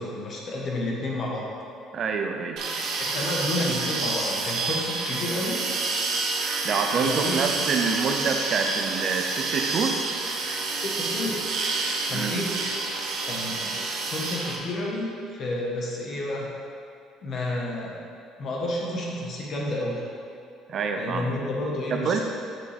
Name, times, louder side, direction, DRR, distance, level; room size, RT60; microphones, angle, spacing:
voice 1, 0.0-1.5 3.0-5.7 6.9-7.5 10.7-11.5 12.0-12.6 13.3-13.8 14.1-16.5 17.2-18.0 18.4-20.0 21.0-22.2, left 1 dB, 35° left, -3 dB, 1.1 m, -30 dB
voice 2, 1.9-2.7 6.6-10.0 12.1-12.4 20.7-21.3 21.9-22.2, right 5 dB, 35° right, 4 dB, 0.4 m, -27 dB
sound 1, 2.6-14.6, right 3 dB, 50° right, 0.8 m, -29 dB
7.4 x 5.8 x 3.4 m, 2.5 s
cardioid pair, 175°, 0 cm